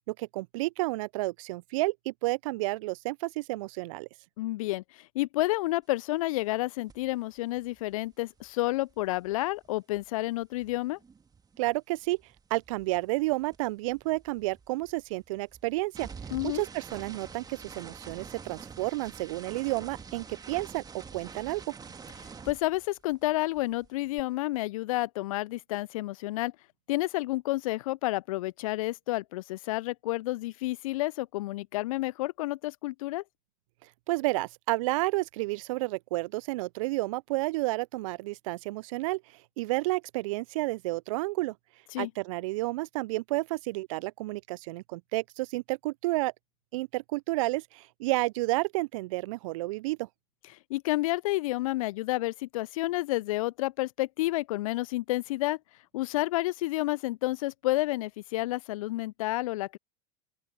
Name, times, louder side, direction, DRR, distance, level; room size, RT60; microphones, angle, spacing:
voice 1, 0.1-4.1 11.6-21.6 33.8-41.5 42.0-46.3 46.7-50.1, right 21 dB, 65° right, 0.4 m, -31 dB
voice 2, 4.4-11.0 16.3-16.6 22.5-26.5 26.9-33.2 41.9-42.1 50.7-55.6 55.9-59.8, left 18 dB, 65° left, 0.4 m, -30 dB
sound 1, 6.9-7.1 7.4-11.8 12.0-23.3 23.5-24.2, right 5 dB, 20° right, 1.8 m, -47 dB
open air
hypercardioid pair, 80°, 19 cm